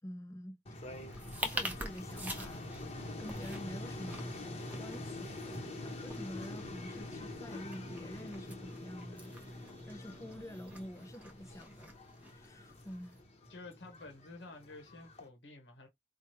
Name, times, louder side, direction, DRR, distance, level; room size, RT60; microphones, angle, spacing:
voice 1, 0.0-0.6 1.4-2.6 3.2-4.4 4.8-5.5 5.8-9.4 9.8-12.0 12.3-13.2, equal, 20° left, 0.5 m, -47 dB
sound 1, 0.6-15.3, left 2 dB, 35° left, 1.0 m, -46 dB
sound 2, 1.1-13.2, right 1 dB, 10° right, 0.9 m, -47 dB
sound 3, 3.3-10.9, right 1 dB, 30° right, 0.6 m, -55 dB
voice 2, 13.5-15.9, left 2 dB, 80° left, 1.1 m, -51 dB
4.7 x 2.3 x 2.9 m
head